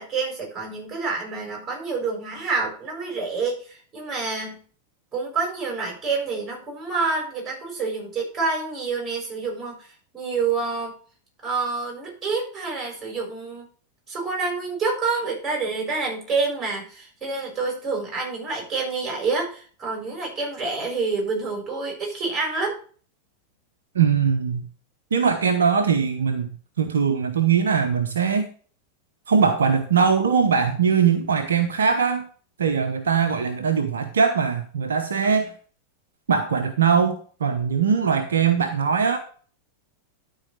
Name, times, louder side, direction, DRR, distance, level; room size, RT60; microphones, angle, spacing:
voice 1, 0.0-4.6 5.1-10.9 11.4-13.6 14.1-22.8, right 4 dB, 20° right, 6.7 m, -28 dB
voice 2, 23.9-24.7 25.1-28.5 29.3-32.3 32.6-35.5 36.3-39.2, right 6 dB, 65° right, 0.9 m, -21 dB
12.0 x 4.8 x 6.4 m
figure-of-eight pair, 90°, 0 cm